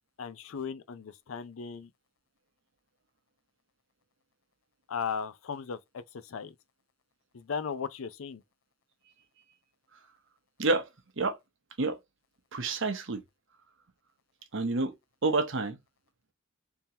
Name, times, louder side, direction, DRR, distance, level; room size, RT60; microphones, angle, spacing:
voice 1, 0.2-1.9 4.9-6.5 7.3-8.4, left 6 dB, 85° left, 0.5 m, -37 dB
voice 2, 12.5-13.2 14.5-14.9 15.2-15.8, right 3 dB, 65° right, 0.9 m, -28 dB
3.6 x 2.9 x 2.7 m
head